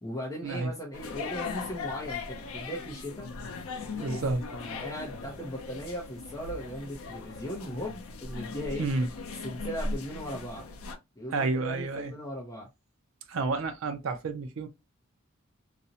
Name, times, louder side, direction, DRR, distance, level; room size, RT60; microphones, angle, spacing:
voice 1, 0.0-3.3 4.0-8.9 9.4-10.6 11.2-12.7, equal, 15° left, 0.5 m, -38 dB
sound 1, 0.9-11.0, left 4 dB, 85° left, 0.5 m, -39 dB
voice 2, 4.0-4.4 8.8-9.1 11.3-12.1 13.3-14.7, right 3 dB, 70° right, 0.4 m, -30 dB
2.5 x 2.0 x 2.7 m
head